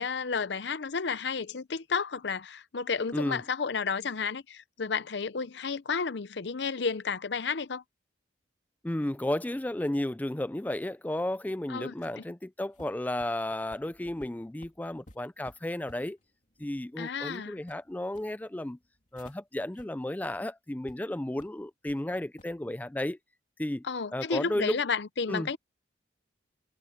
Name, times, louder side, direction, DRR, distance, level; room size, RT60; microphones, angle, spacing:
voice 1, 0.0-7.8 11.7-12.2 17.0-17.6 23.8-25.6, left 5 dB, 65° left, 0.7 m, -32 dB
voice 2, 8.8-16.2 16.6-18.8 19.1-23.2 23.6-23.8 24.1-24.8 25.3-25.5, left 1 dB, 10° left, 0.3 m, -33 dB
sound 1, 12.7-19.4 19.7-19.9 20.2-20.4 20.9-21.0 21.4-22.0 22.4-22.6, left 1 dB, 40° left, 2.9 m, -56 dB
head